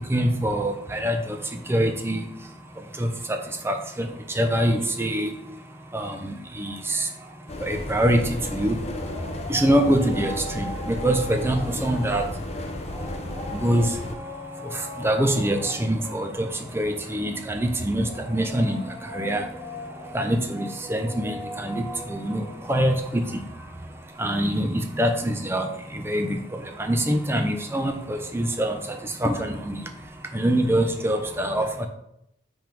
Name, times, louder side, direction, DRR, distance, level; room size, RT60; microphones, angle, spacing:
voice 1, 0.1-1.4 1.7-2.3 3.0-3.4 3.6-4.1 4.4-5.3 5.9-7.1 7.6-8.8 9.5-12.3 13.5-13.9 15.0-16.5 16.7-18.8 19.1-19.4 20.1-23.2 24.2-26.4 26.8-29.8 30.3-31.9, right 1 dB, 15° right, 5 dB, 0.5 m, -24 dB
sound 1, 7.5-14.1, left 1 dB, 35° left, 0.6 m, -33 dB
sound 2, 8.2-24.5, left 1 dB, 15° left, 2.6 m, -41 dB
5.7 x 3.5 x 5.1 m, 0.79 s
head